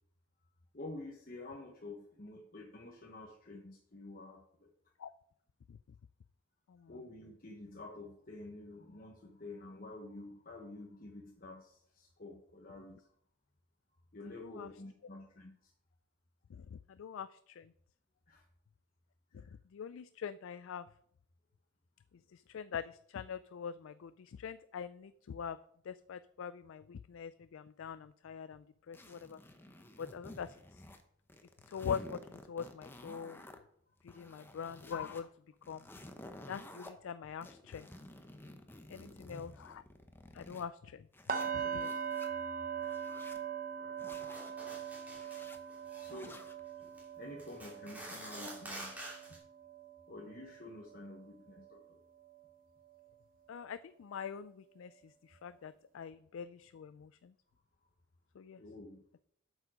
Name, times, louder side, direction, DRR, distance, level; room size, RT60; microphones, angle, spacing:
voice 1, 0.7-4.7 6.9-13.1 14.1-15.7 18.3-18.4 19.3-19.5 39.0-39.2 43.8-44.0 46.0-46.4 47.2-49.1 50.1-52.0 58.6-59.0, left 2 dB, 40° left, 0 dB, 1.1 m, -49 dB
voice 2, 6.7-7.0 14.4-14.7 16.5-17.7 19.3-19.4 19.7-20.9 22.3-25.6 25.9-29.4 30.0-30.6 31.7-33.4 34.0-35.3 35.7-35.8 36.5-37.9 38.9-39.8 40.3-41.1 41.5-41.9 53.5-57.3 58.4-58.6, left 7 dB, 70° left, 14 dB, 0.3 m, -43 dB
sound 1, 28.9-31.0 31.3-33.6 34.0-35.2 35.6-36.9 37.4-40.6 41.1-42.3 42.8-43.4 44.0-44.5 45.1-45.6 46.1-46.6, left 1 dB, 10° left, 0.7 m, -52 dB
sound 2, 41.3-51.2 51.5-51.8 52.3-52.4, right 7 dB, 40° right, 0.9 m, -41 dB
sound 3, 44.3-45.4 45.7-46.2 46.8-47.0 47.4-49.4, right 1 dB, 10° right, 2.8 m, -48 dB
8.1 x 7.1 x 5.1 m, 0.68 s
head